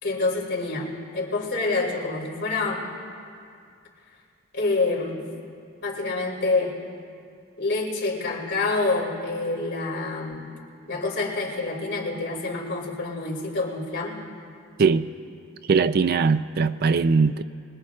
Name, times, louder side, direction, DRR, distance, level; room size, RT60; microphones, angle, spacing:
voice 1, 0.0-2.9 4.5-5.2 5.8-6.8 7.6-10.5 10.9-14.2, left 3 dB, 55° left, -4 dB, 3.5 m, -27 dB
voice 2, 15.7-17.4, right 5 dB, 45° right, 13 dB, 0.3 m, -20 dB
25.0 x 21.0 x 2.4 m, 2.4 s
head